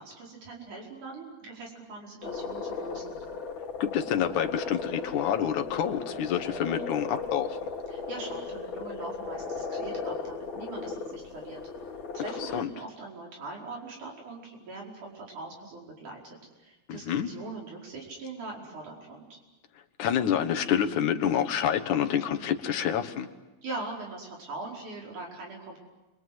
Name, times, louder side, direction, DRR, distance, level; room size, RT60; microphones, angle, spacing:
voice 1, 0.0-3.2 7.9-11.6 12.1-19.4 23.6-25.8, right 3 dB, 80° right, -1 dB, 6.5 m, -41 dB
sound 1, 2.2-12.6, left 4 dB, 60° left, 3.6 m, -36 dB
voice 2, 3.8-7.7 12.4-12.7 16.9-17.3 20.0-23.3, left 9 dB, 80° left, 6 dB, 2.8 m, -28 dB
29.5 x 24.0 x 7.9 m, 1.1 s
omnidirectional pair, 3.5 m